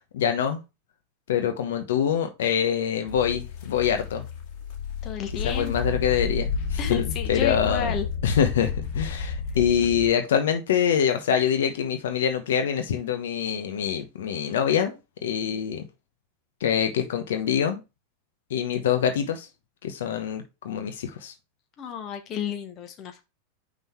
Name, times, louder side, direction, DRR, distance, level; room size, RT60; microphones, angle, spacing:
voice 1, 0.1-0.6 1.3-4.3 5.4-7.9 8.2-15.0 15.2-15.8 16.6-17.8 18.5-19.5 19.8-21.3, left 8 dB, 80° left, 1.1 m, -25 dB
sound 1, 3.1-10.1, left 5 dB, 55° left, 2.2 m, -31 dB
voice 2, 5.0-6.0 6.8-8.0 21.8-23.2, left 7 dB, 35° left, 1.2 m, -32 dB
5.6 x 3.9 x 4.6 m
hypercardioid pair, 125°, 0 cm